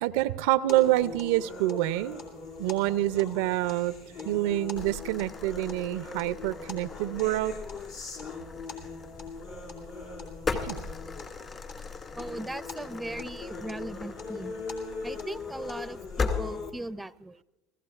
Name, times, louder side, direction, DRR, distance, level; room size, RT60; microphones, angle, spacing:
voice 1, 0.0-2.2 2.6-3.9 4.2-7.5 10.5-10.9, right 16 dB, 75° right, 16 dB, 0.4 m, -27 dB
sound 1, 0.7-16.7, left 4 dB, 75° left, 2.6 m, -41 dB
sound 2, 4.8-16.4, left 4 dB, 35° left, 2.1 m, -39 dB
voice 2, 12.2-14.7 15.0-17.4, right 1 dB, 10° right, 16 dB, 0.5 m, -38 dB
28.5 x 16.0 x 2.4 m, 0.99 s
hypercardioid pair, 85°, 0 cm